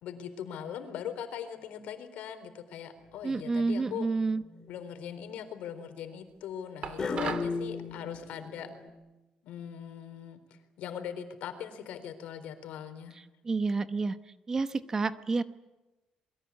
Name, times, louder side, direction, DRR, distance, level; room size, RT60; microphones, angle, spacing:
voice 1, 0.0-4.1 4.7-8.7 9.4-13.2, left 9 dB, 75° left, 9 dB, 3.9 m, -41 dB
sound 1, 3.1-3.6 4.2-4.7 7.0-8.9, left 4 dB, 30° left, 3.5 m, -36 dB
voice 2, 3.2-4.4 13.4-14.2 14.5-15.4, right 3 dB, 25° right, 12 dB, 1.0 m, -29 dB
sound 2, 6.8-7.6, right 7 dB, 45° right, 2.1 m, -36 dB
28.0 x 22.5 x 8.5 m, 1.1 s
cardioid pair, 150°, 2 cm